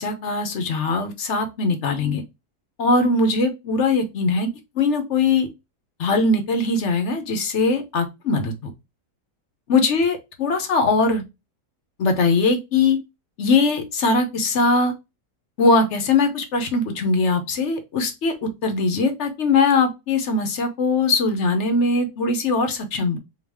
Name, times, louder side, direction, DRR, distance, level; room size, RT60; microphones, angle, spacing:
voice 1, 0.0-2.2 2.8-4.5 4.8-5.5 6.0-8.5 9.7-11.2 12.0-13.0 13.4-14.9 15.6-23.2, left 3 dB, 55° left, 0.9 m, -21 dB
4.7 x 2.4 x 3.4 m
omnidirectional pair, 1.7 m